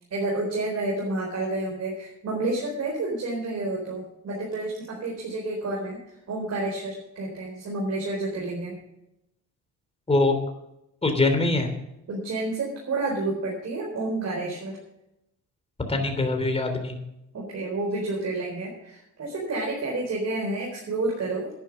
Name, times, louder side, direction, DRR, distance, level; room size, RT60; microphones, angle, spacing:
voice 1, 0.1-6.0 6.3-8.8 12.1-14.8 17.3-21.5, right 2 dB, 55° right, -2 dB, 4.3 m, -30 dB
voice 2, 11.0-11.7 15.9-17.0, left 2 dB, 20° left, 5 dB, 3.3 m, -23 dB
10.5 x 10.5 x 6.3 m, 0.85 s
cardioid pair, 90°, 30 cm